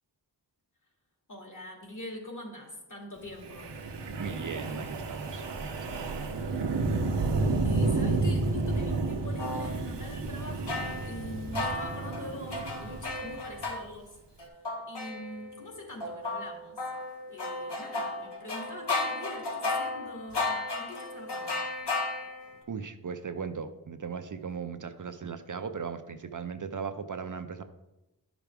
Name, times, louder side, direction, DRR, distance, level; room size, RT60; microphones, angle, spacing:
voice 1, 1.3-3.8 7.6-14.2 14.9-16.8 17.3-21.6, left 1 dB, 45° left, 0 dB, 2.4 m, -43 dB
Wind, 3.4-13.7, right 3 dB, 80° right, 0.9 m, -31 dB
voice 2, 4.2-6.8 22.7-27.6, right 6 dB, 50° right, 8 dB, 0.6 m, -38 dB
sound 1, 9.4-9.7 10.7-13.8 14.4-15.6 16.0-22.5, left 2 dB, 70° left, 1.6 m, -34 dB
11.0 x 5.9 x 3.5 m, 0.99 s
wide cardioid pair, 70°, 42 cm